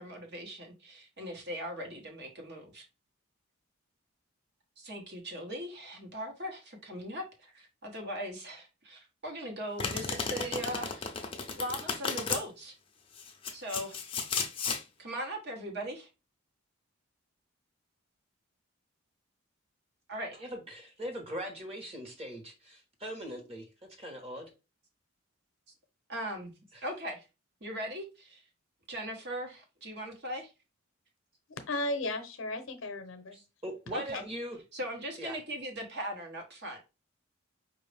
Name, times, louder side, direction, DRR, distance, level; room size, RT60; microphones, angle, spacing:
voice 1, 0.0-2.8 4.8-11.1 11.5-12.8 13.5-14.0 15.0-16.1 20.1-20.4 26.1-26.5 26.8-27.3 27.6-28.4 28.9-30.5 33.9-34.2 34.7-36.8, equal, 50° right, 1.2 m, -39 dB
Domestic sounds home sounds, 9.8-12.4 13.2-14.8, left 5 dB, 25° left, 0.5 m, -34 dB
voice 2, 20.3-23.6 24.0-24.5 26.7-26.8 33.3-34.6 35.2-35.4, equal, 30° right, 1.2 m, -40 dB
voice 3, 31.5-33.4, left 1 dB, 65° left, 0.7 m, -35 dB
5.0 x 2.6 x 3.4 m
head